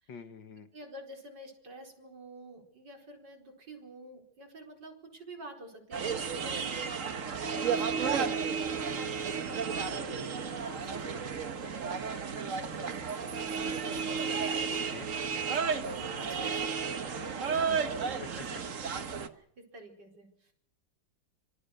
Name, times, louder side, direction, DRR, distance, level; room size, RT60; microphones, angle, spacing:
voice 1, 0.1-0.7 7.9-8.4 14.7-15.1 18.2-18.4, left 5 dB, 70° left, 9 dB, 2.3 m, -45 dB
voice 2, 0.7-15.1 15.4-19.1 19.3-20.5, right 1 dB, 60° right, 3 dB, 5.3 m, -49 dB
sound 1, 5.9-19.3, right 6 dB, 45° right, 1.5 m, -33 dB
26.0 x 21.0 x 6.7 m, 0.71 s
omnidirectional pair, 2.1 m